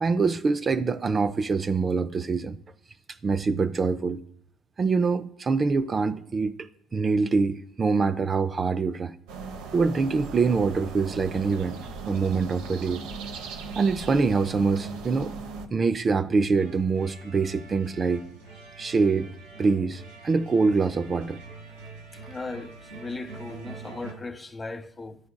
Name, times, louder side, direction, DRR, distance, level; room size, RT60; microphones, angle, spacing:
voice 1, 0.0-2.6 3.2-4.2 4.8-9.1 9.7-11.8 12.1-13.0 13.8-15.3 15.7-18.2 18.8-19.3 19.6-21.4, right 4 dB, 35° right, 0.4 m, -24 dB
sound 1, 9.3-15.7, right 5 dB, 70° right, 0.7 m, -38 dB
sound 2, 16.6-24.1, right 4 dB, 85° right, 1.6 m, -45 dB
voice 2, 22.1-25.2, left 3 dB, 20° left, 0.8 m, -37 dB
11.5 x 4.6 x 2.2 m
hypercardioid pair, 60°, 0 cm